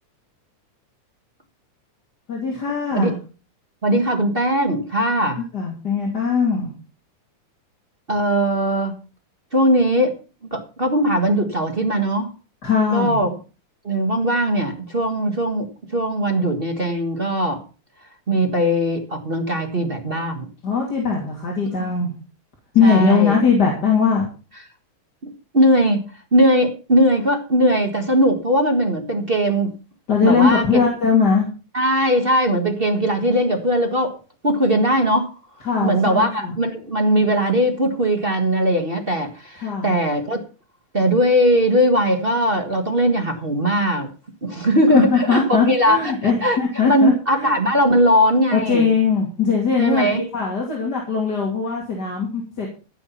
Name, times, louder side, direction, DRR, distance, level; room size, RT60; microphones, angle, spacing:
voice 1, 2.3-3.1 5.4-6.7 12.6-13.2 20.6-22.1 22.7-24.3 30.1-31.5 35.7-36.6 39.6-40.0 44.9-47.6 48.5-52.7, left 5 dB, 35° left, -1 dB, 3.0 m, -20 dB
voice 2, 3.8-5.4 8.1-9.0 9.5-10.1 10.5-12.3 12.9-13.3 13.8-17.6 18.3-20.5 21.8-21.9 22.8-23.4 25.2-29.7 30.2-30.8 31.7-34.1 34.4-35.3 35.8-40.4 40.9-44.1 44.4-46.0 46.2-46.6 46.9-48.8 49.8-50.2, equal, 30° right, 4 dB, 1.0 m, -19 dB
16.0 x 7.2 x 5.7 m, 0.35 s
omnidirectional pair, 3.3 m